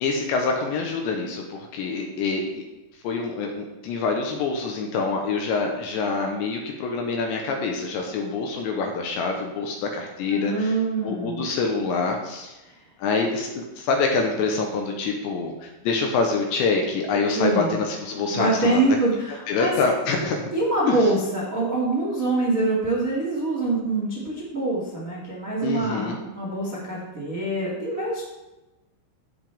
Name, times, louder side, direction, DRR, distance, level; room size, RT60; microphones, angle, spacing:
voice 1, 0.0-2.6 3.0-10.7 11.0-12.6 13.0-18.8 19.5-20.5 20.9-21.1 25.6-26.2, left 4 dB, 80° left, 2 dB, 2.8 m, -26 dB
voice 2, 10.3-11.4 12.6-12.7 17.3-17.7 18.3-19.7 20.2-28.2, right 2 dB, 70° right, -5 dB, 0.7 m, -25 dB
15.0 x 6.4 x 3.5 m, 1.0 s
omnidirectional pair, 5.8 m